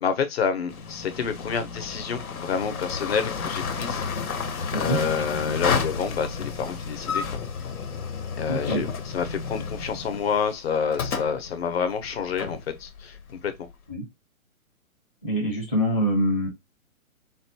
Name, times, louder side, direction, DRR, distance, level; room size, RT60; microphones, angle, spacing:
voice 1, 0.0-4.0 4.7-7.4 8.4-13.7, left 6 dB, 45° left, 0.7 m, -28 dB
sound 1, 0.7-13.7, left 5 dB, 85° left, 0.9 m, -31 dB
voice 2, 8.5-8.9 13.9-14.1 15.2-16.5, equal, 5° left, 0.5 m, -25 dB
3.9 x 2.2 x 2.7 m
hypercardioid pair, 160°, 42 cm